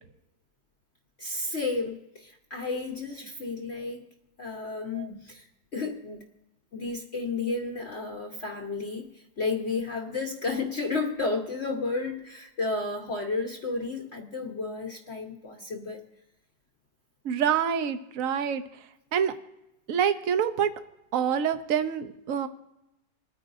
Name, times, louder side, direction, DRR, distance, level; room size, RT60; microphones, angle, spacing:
voice 1, 1.2-4.0 4.4-5.5 5.7-6.3 6.7-16.0, left 3 dB, 45° left, 2 dB, 1.1 m, -32 dB
voice 2, 17.2-19.3 19.9-20.7 21.1-22.5, right 8 dB, 55° right, 9 dB, 1.2 m, -27 dB
27.0 x 9.7 x 2.6 m, 0.92 s
omnidirectional pair, 1.9 m